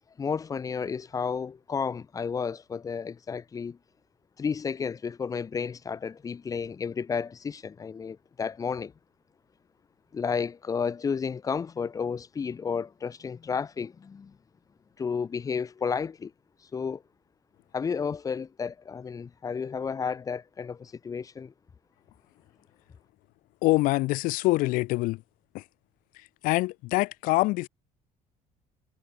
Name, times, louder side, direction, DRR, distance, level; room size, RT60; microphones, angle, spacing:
voice 1, 0.2-3.8 4.4-8.9 10.1-14.3 15.0-16.3 16.7-17.0 17.7-21.5, left 6 dB, 25° left, 2.3 m, -32 dB
voice 2, 23.6-25.2 25.5-25.6 26.4-27.7, left 20 dB, 85° left, 4.5 m, -25 dB
cardioid pair, 150°, 14 cm